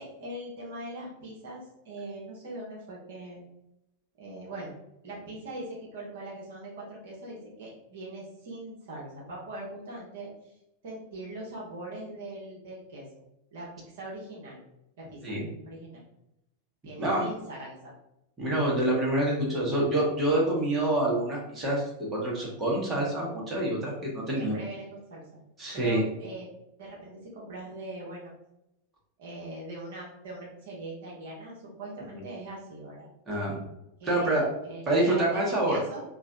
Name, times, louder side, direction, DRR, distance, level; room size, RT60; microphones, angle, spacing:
voice 1, 0.0-3.4 4.2-4.7 5.0-10.6 10.8-13.1 13.5-13.7 13.9-14.6 15.0-15.2 15.6-16.0 16.8-17.9 20.5-20.7 24.3-25.4 25.7-26.5 26.8-28.3 29.2-33.1 34.0-36.0, right 2 dB, 55° right, -3 dB, 1.0 m, -41 dB
voice 2, 18.4-21.8 22.1-24.6 25.6-26.0 33.3-33.6 34.0-34.4 34.9-35.8, right 1 dB, 20° right, -4 dB, 1.3 m, -26 dB
3.1 x 2.5 x 3.7 m, 0.85 s
figure-of-eight pair, 90°, 0 cm